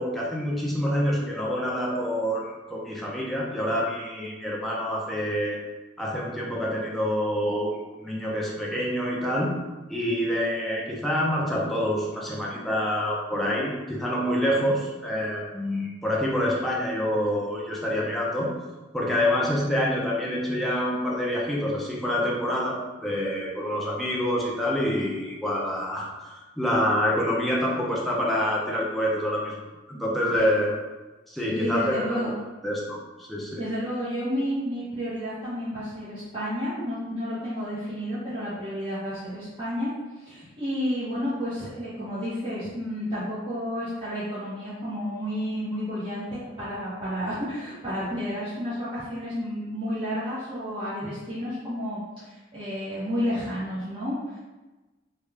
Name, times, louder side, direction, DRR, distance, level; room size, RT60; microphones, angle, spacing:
voice 1, 0.0-5.6 6.0-9.5 9.9-18.5 18.9-29.6 29.9-30.7 31.3-32.3 32.6-33.6, equal, ahead, -4 dB, 0.5 m, -27 dB
voice 2, 31.4-32.3 33.6-39.9 40.2-54.4, equal, 25° right, -12 dB, 0.8 m, -31 dB
3.3 x 2.3 x 3.3 m, 1.2 s
head